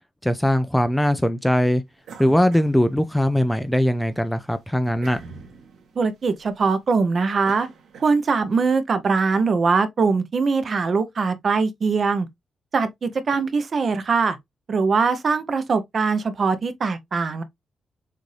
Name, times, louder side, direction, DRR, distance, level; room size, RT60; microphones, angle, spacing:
voice 1, 0.2-1.8 2.2-5.2, equal, 5° left, 0.4 m, -20 dB
sound 1, 2.0-3.6 4.0-8.6, right 5 dB, 85° right, 1.4 m, -45 dB
voice 2, 6.0-7.7 8.0-12.3 12.7-14.4 14.7-17.4, right 4 dB, 40° right, 0.7 m, -22 dB
6.5 x 2.6 x 3.1 m
wide cardioid pair, 165°, 0 cm